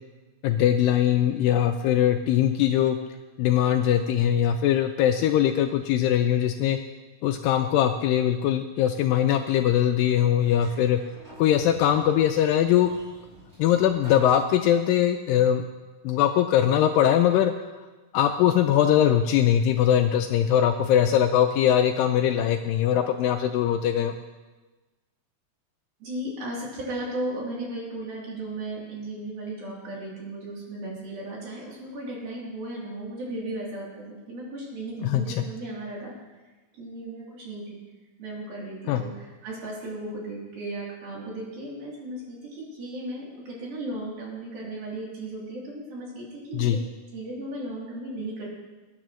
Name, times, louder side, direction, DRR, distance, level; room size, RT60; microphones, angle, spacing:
voice 1, 0.4-3.0 3.4-6.8 7.2-11.0 11.4-12.9 13.6-15.7 16.0-17.5 18.1-24.1 35.0-35.4 38.9-39.0 46.5-46.8, left 10 dB, 80° left, 6 dB, 2.1 m, -21 dB
Sliding door, 10.4-15.1, left 1 dB, 20° right, 2.8 m, -48 dB
voice 2, 26.0-36.1 36.7-37.8 38.2-46.8 47.1-48.5, right 1 dB, 70° right, -5 dB, 4.9 m, -35 dB
20.5 x 9.7 x 3.1 m, 1.2 s
omnidirectional pair, 4.4 m